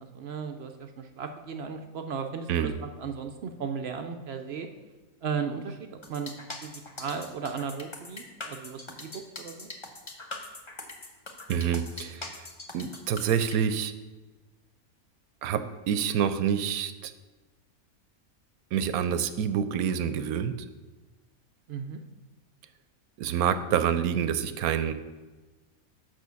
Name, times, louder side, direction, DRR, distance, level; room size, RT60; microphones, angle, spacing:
voice 1, 0.0-2.7 3.0-4.7 5.2-6.3 6.6-9.7 21.7-22.0, right 6 dB, 60° right, 6 dB, 0.7 m, -36 dB
sound 1, 6.0-13.6, left 2 dB, 25° left, 0.7 m, -41 dB
voice 2, 11.5-12.5 12.7-13.9 15.4-17.1 18.7-20.5 23.2-24.9, right 8 dB, 85° right, 12 dB, 1.1 m, -27 dB
6.3 x 5.6 x 6.9 m, 1.2 s
omnidirectional pair, 1.5 m